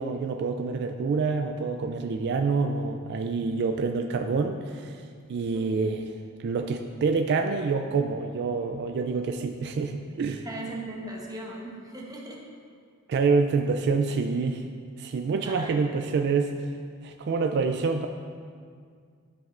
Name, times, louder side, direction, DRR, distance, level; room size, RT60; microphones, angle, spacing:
voice 1, 0.0-5.0 5.3-6.1 6.4-10.4 13.1-14.6 15.0-16.5 17.0-18.1, right 4 dB, 50° right, 5 dB, 0.3 m, -27 dB
voice 2, 10.4-12.4 15.4-16.0, right 1 dB, 15° right, -2 dB, 0.8 m, -39 dB
12.0 x 5.3 x 2.5 m, 2.1 s
head